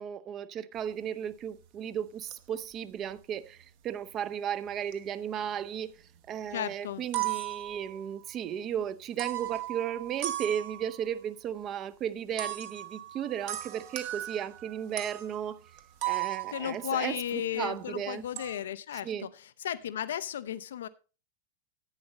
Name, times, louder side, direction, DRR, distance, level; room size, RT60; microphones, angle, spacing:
voice 1, 0.0-5.9 6.3-15.6 16.0-18.2 19.0-19.3, right 9 dB, 30° right, 0.6 m, -35 dB
sound 1, 0.8-0.9 1.3-1.8 2.3-2.8 3.1-3.7 4.7-5.1 5.4-6.2 6.6-6.7 6.9-8.4 9.2-11.1 12.4-17.6 17.9-18.6, right 14 dB, 50° right, 1.1 m, -37 dB
voice 2, 6.5-7.0 16.5-19.1 19.6-20.9, left 10 dB, 60° left, 0.5 m, -34 dB
10.5 x 8.6 x 4.0 m
figure-of-eight pair, 90°, 0 cm